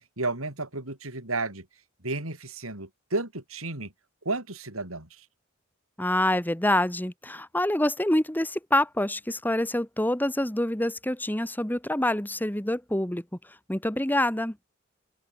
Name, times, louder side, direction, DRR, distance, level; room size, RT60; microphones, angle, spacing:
voice 1, 0.2-1.7 2.0-3.9 4.2-5.2, right 2 dB, 85° right, 6.2 m, -32 dB
voice 2, 6.0-13.2 13.7-14.6, left 1 dB, 10° left, 1.5 m, -26 dB
head